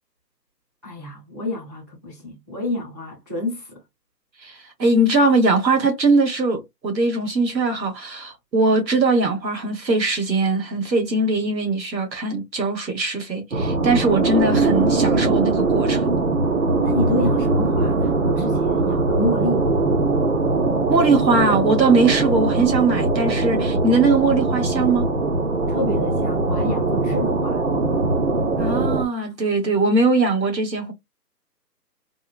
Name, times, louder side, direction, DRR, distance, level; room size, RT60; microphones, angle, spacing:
voice 1, 0.8-3.7 16.8-19.7 25.7-27.6, left 1 dB, 15° right, 0.7 m, -28 dB
voice 2, 4.4-16.1 20.9-25.1 28.6-30.9, right 3 dB, 85° right, 1.6 m, -20 dB
sound 1, 13.5-29.0, right 3 dB, 45° right, 0.7 m, -21 dB
3.6 x 2.2 x 2.4 m
hypercardioid pair, 160°, 50 cm